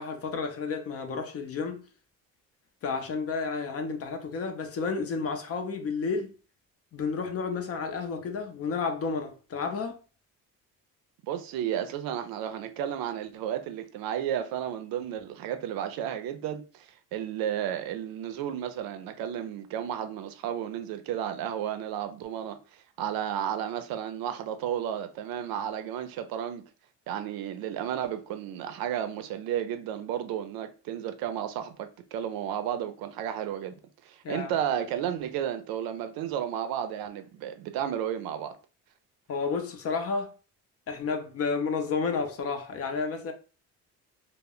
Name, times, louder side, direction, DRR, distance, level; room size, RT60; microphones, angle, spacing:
voice 1, 0.0-1.8 2.8-6.3 6.9-10.0 34.2-34.5 39.3-40.3 40.9-43.3, left 5 dB, 40° left, 0.5 m, -31 dB
voice 2, 11.2-26.6 27.1-33.8 34.0-38.6, right 10 dB, 80° right, 0.5 m, -33 dB
2.1 x 2.1 x 3.6 m
cardioid pair, 115°, 35 cm